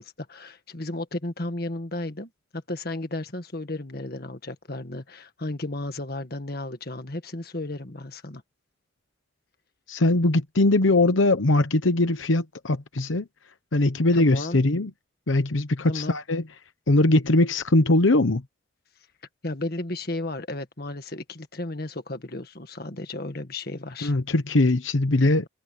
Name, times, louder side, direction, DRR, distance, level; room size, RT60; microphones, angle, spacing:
voice 1, 0.0-8.4 14.1-14.6 15.9-16.2 19.4-24.1, left 2 dB, 50° left, 1.8 m, -34 dB
voice 2, 9.9-13.2 13.7-14.9 15.3-16.4 16.9-18.4 24.0-25.4, left 2 dB, 85° left, 1.0 m, -21 dB
head